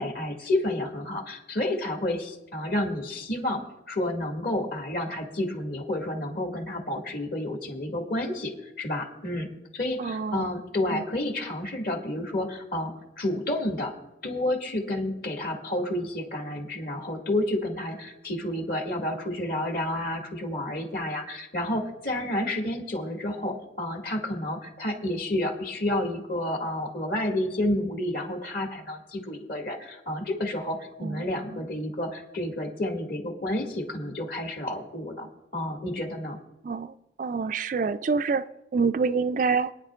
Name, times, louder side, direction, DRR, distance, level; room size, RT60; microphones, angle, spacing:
voice 1, 0.0-3.6 3.9-9.5 9.7-13.9 14.2-35.3 35.5-36.4, left 1 dB, 55° left, 2.1 m, -30 dB
voice 2, 10.0-10.5 10.9-11.0 31.0-31.2 31.5-31.6 36.6-39.8, right 5 dB, 45° right, 0.3 m, -27 dB
26.5 x 9.6 x 2.5 m
head